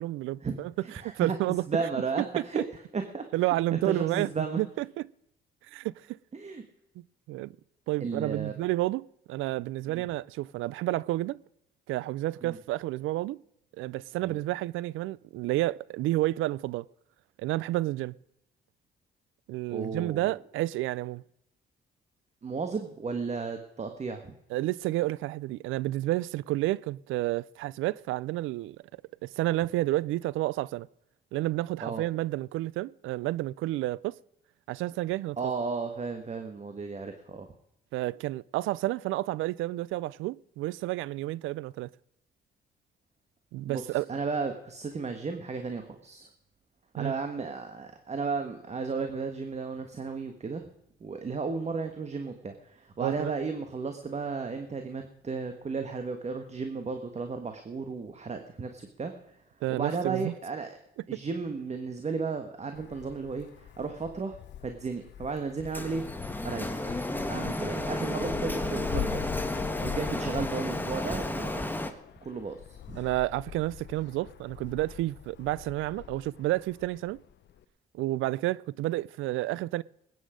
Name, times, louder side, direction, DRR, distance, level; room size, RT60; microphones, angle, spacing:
voice 1, 0.0-1.9 2.2-2.6 3.3-4.3 4.6-5.1 5.7-6.2 7.3-7.5 7.9-11.4 11.9-13.4 13.8-16.9 17.4-18.1 19.5-21.2 24.5-28.8 29.2-30.9 31.3-34.2 34.7-35.4 37.9-41.9 43.5-44.1 47.0-47.1 53.0-53.3 59.6-60.3 61.1-61.2 73.0-77.2 77.9-79.8, right 17 dB, 90° right, 0.4 m, -30 dB
voice 2, 0.8-1.4 1.7-2.6 2.9-4.6 6.3-6.6 8.0-8.5 9.9-10.0 12.4-12.6 14.2-14.4 19.7-20.3 22.4-24.3 31.8-32.0 35.4-37.5 43.6-46.3 46.9-50.6 51.0-59.1 59.7-60.8 61.1-66.1 66.4-67.0 67.3-69.2 69.8-71.6 72.2-73.0, right 4 dB, 35° right, 1.4 m, -34 dB
Wind, 62.7-77.6, left 10 dB, 60° left, 0.8 m, -42 dB
Printer, 65.7-71.9, left 1 dB, 10° left, 1.4 m, -32 dB
20.5 x 9.5 x 5.0 m
cardioid pair, 90°, 20 cm